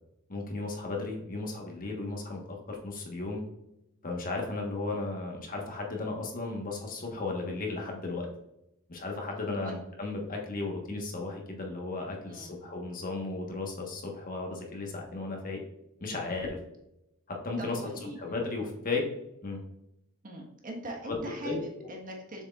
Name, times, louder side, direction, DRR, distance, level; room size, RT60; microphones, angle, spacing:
voice 1, 0.3-3.4 4.0-8.3 8.9-15.6 16.0-16.6 17.3-19.0 19.4-19.6 21.0-21.9, left 3 dB, 40° left, 1 dB, 1.3 m, -35 dB
voice 2, 12.3-12.6 17.6-18.2 20.2-22.4, right 1 dB, 40° right, 0 dB, 1.4 m, -41 dB
7.1 x 6.4 x 2.4 m, 0.83 s
head